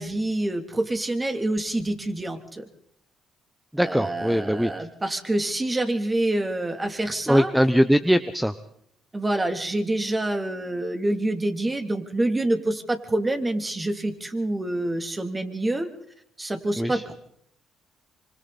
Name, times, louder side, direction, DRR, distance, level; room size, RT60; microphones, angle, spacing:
voice 1, 0.0-2.6 3.8-7.5 9.1-15.9 16.4-17.1, right 1 dB, 20° right, 6 dB, 3.1 m, -27 dB
voice 2, 3.7-4.7 7.3-8.5 16.8-17.0, equal, 5° right, 12 dB, 1.1 m, -21 dB
25.5 x 25.5 x 4.3 m, 0.70 s
supercardioid pair, 60°, 0 cm